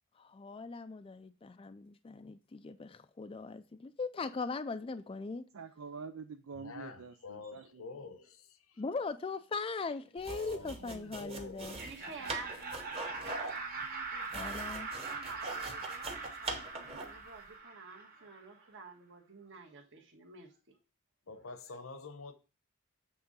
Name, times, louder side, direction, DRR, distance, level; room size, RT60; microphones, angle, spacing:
voice 1, 0.2-5.4 8.8-11.8 14.3-14.9, left 4 dB, 25° left, 0.4 m, -40 dB
voice 2, 5.5-7.9 10.6-11.5, right 5 dB, 80° right, 0.5 m, -47 dB
voice 3, 6.6-8.8 10.3-10.8 11.1-11.7 21.3-22.3, left 4 dB, 75° left, 1.0 m, -47 dB
sound 1, 10.2-17.2, right 2 dB, 30° right, 1.2 m, -43 dB
Laughter, 11.6-18.4, right 4 dB, 45° right, 1.8 m, -42 dB
voice 4, 11.8-20.8, right 4 dB, 60° right, 1.5 m, -50 dB
8.0 x 3.8 x 5.4 m
head